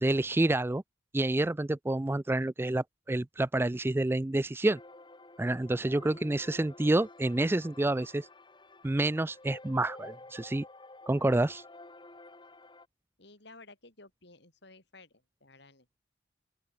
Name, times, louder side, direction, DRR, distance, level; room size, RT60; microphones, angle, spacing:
voice 1, 0.0-0.8 1.1-4.8 5.4-8.3 8.8-10.6 11.1-11.6, right 2 dB, 10° right, 0.3 m, -28 dB
sound 1, 4.7-12.9, left 2 dB, 25° left, 1.9 m, -51 dB
voice 2, 13.2-16.0, left 3 dB, 60° left, 4.7 m, -55 dB
open air
head